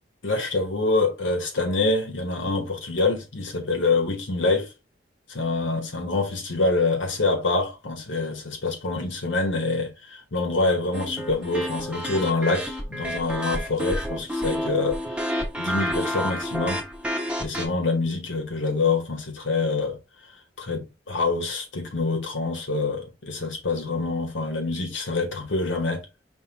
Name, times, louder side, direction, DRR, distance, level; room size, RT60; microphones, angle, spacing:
voice 1, 0.2-4.7 5.3-16.8 17.4-20.0 20.6-26.1, left 3 dB, 85° left, 1.2 m, -26 dB
sound 1, 10.9-17.7, equal, 5° right, 0.7 m, -30 dB
5.5 x 2.8 x 2.9 m
head